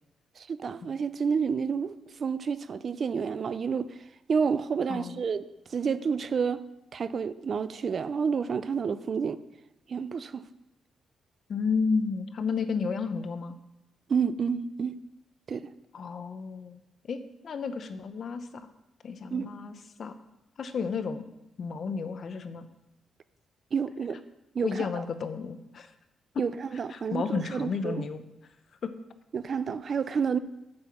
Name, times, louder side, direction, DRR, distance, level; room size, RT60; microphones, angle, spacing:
voice 1, 0.4-1.9 2.2-3.9 4.3-5.4 5.7-6.6 6.9-9.4 9.9-10.4 14.1-15.0 15.5-15.7 19.3-19.5 23.7-24.2 24.5-25.0 26.4-28.0 29.3-30.4, right 6 dB, 50° right, 0.5 m, -29 dB
voice 2, 4.9-5.2 11.5-13.6 15.9-16.8 17.1-18.7 19.0-20.1 20.6-21.2 21.6-22.7 24.6-25.9 26.3-26.4 26.9-28.2 28.8-28.9, left 5 dB, 55° left, 0.8 m, -32 dB
7.7 x 5.8 x 7.2 m
cardioid pair, 105°, 0 cm